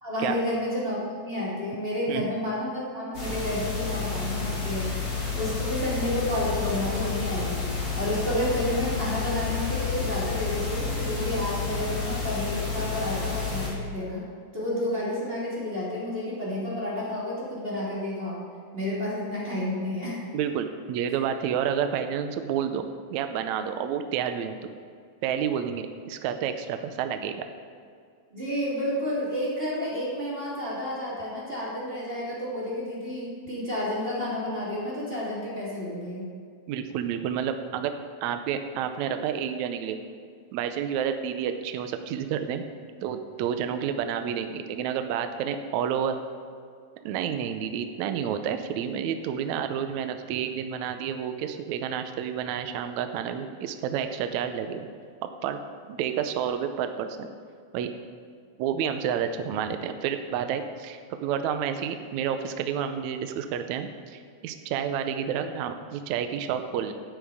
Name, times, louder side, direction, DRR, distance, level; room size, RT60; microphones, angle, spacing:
voice 1, 0.0-7.7 7.9-14.2 14.5-18.4 18.7-20.2 28.3-36.2, left 1 dB, 15° right, -8 dB, 2.7 m, -30 dB
sound 1, 3.1-13.7, left 4 dB, 45° left, 3.9 m, -30 dB
voice 2, 20.3-24.6 25.2-27.5 36.7-37.9 38.2-40.0 40.5-42.6 43.0-46.2 47.0-54.9 55.4-55.6 55.9-57.3 57.7-57.9 58.6-66.9, right 8 dB, 85° right, 7 dB, 1.6 m, -30 dB
12.5 x 9.1 x 4.9 m, 2.2 s
omnidirectional pair, 4.1 m